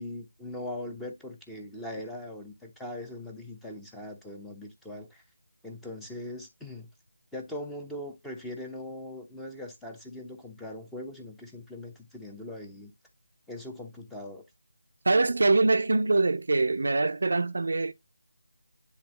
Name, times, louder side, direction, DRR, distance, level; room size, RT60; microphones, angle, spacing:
voice 1, 0.0-5.2 5.6-6.9 7.3-12.9 13.5-14.4, left 1 dB, 5° left, 0.8 m, -40 dB
voice 2, 15.0-17.9, right 3 dB, 60° right, 0.6 m, -24 dB
9.8 x 3.5 x 3.0 m
figure-of-eight pair, 160°, 0 cm